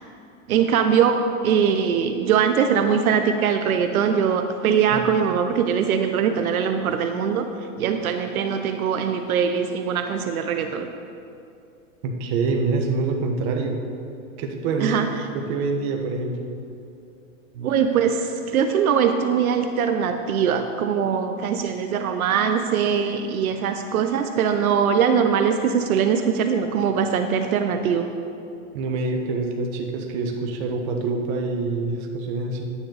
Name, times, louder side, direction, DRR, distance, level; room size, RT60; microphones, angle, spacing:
voice 1, 0.5-7.5 7.8-10.9 14.8-15.1 17.6-28.1, right 7 dB, 90° right, 7 dB, 0.8 m, -22 dB
voice 2, 12.0-13.8 14.4-15.1 15.3-16.5 28.7-32.7, right 3 dB, 50° right, 3 dB, 1.4 m, -26 dB
11.0 x 9.7 x 4.0 m, 2.6 s
hypercardioid pair, 135°, 41 cm